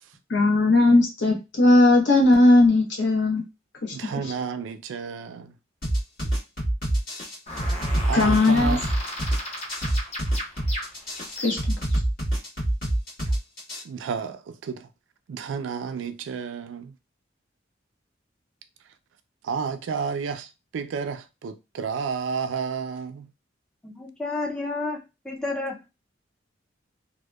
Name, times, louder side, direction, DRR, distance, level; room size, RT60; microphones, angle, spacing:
voice 1, 0.3-3.4 3.8-4.1 8.1-8.8 11.4-11.6, left 2 dB, 70° left, 0.8 m, -18 dB
voice 2, 3.9-5.5 8.0-8.8 9.8-9.9 13.8-14.9 15.3-16.9 19.4-23.3, right 5 dB, 85° right, 0.3 m, -31 dB
sound 1, 5.8-13.8, right 1 dB, 50° left, 1.3 m, -25 dB
sound 2, 7.5-11.9, left 1 dB, 35° left, 0.7 m, -35 dB
voice 3, 23.8-25.9, left 3 dB, 5° left, 0.4 m, -31 dB
2.7 x 2.0 x 2.2 m
head